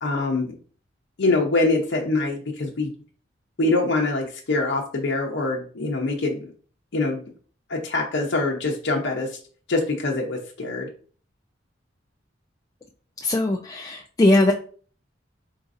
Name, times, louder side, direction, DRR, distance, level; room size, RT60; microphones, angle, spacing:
voice 1, 0.0-0.6 1.2-2.9 3.6-6.5 6.9-7.2 7.7-9.3 9.7-10.9, left 2 dB, 65° left, -1 dB, 0.7 m, -24 dB
voice 2, 13.2-14.5, left 2 dB, 20° left, 2 dB, 0.3 m, -20 dB
3.9 x 3.7 x 2.5 m, 0.43 s
head